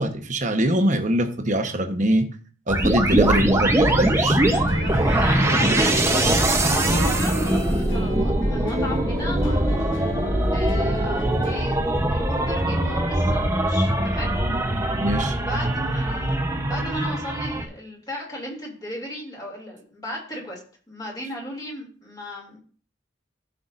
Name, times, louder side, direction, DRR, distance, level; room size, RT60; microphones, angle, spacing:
voice 1, 0.0-2.2 2.7-4.4 15.0-15.4, right 1 dB, 40° right, 5 dB, 1.1 m, -23 dB
sound 1, 2.7-17.6, right 1 dB, 15° right, 0.9 m, -22 dB
sound 2, 2.8-16.9, right 1 dB, 85° right, 1.0 m, -34 dB
voice 2, 4.1-9.8 10.5-11.8 12.1-14.3 14.8-14.9 15.2-20.6 20.9-22.6, left 1 dB, 20° left, -2 dB, 2.8 m, -35 dB
sound 3, 4.3-11.6, left 1 dB, 85° left, 1.6 m, -37 dB
13.5 x 5.8 x 2.6 m, 0.42 s
head